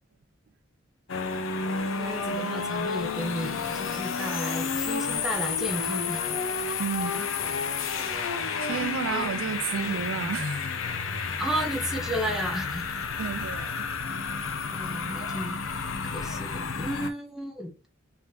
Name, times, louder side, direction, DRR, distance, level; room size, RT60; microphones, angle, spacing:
sound 1, 1.1-17.1, left 5 dB, 80° left, 0.6 m, -31 dB
voice 1, 2.0-6.4 9.1-9.3 11.4-12.9 14.7-15.6 16.0-17.7, equal, ahead, 0.9 m, -33 dB
voice 2, 6.8-7.3 8.6-10.7 13.2-13.9, right 7 dB, 80° right, 0.3 m, -32 dB
3.6 x 2.9 x 3.2 m
head